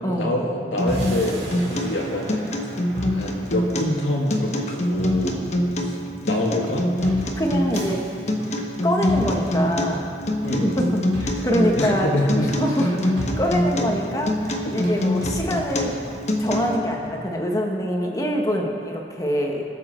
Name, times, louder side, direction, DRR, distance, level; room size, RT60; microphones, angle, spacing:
voice 1, 0.1-2.5 3.1-5.4 5.8-6.8 10.4-10.7 11.8-12.5 12.9-13.0 14.7-14.8, left 1 dB, 80° left, -1 dB, 2.1 m, -26 dB
Acoustic guitar, 0.8-16.8, left 1 dB, 40° left, 1.1 m, -25 dB
sound 1, 0.9-17.2, right 1 dB, 65° right, 2.2 m, -36 dB
voice 2, 7.3-8.0 8.8-10.1 10.6-10.9 11.2-12.1 12.6-12.9 13.4-14.4 14.7-15.9 16.4-19.6, equal, 20° left, 0 dB, 1.3 m, -24 dB
21.5 x 7.5 x 4.4 m, 2.5 s
head